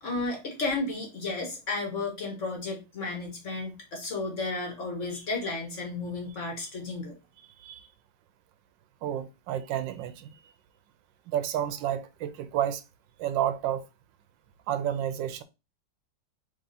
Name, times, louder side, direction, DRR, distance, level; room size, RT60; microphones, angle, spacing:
voice 1, 0.0-7.1, left 3 dB, 45° left, 1.3 m, -33 dB
voice 2, 9.0-10.3 11.3-12.8 13.2-13.9 14.7-15.4, right 10 dB, 90° right, 1.3 m, -30 dB
3.6 x 3.4 x 4.0 m
omnidirectional pair, 2.0 m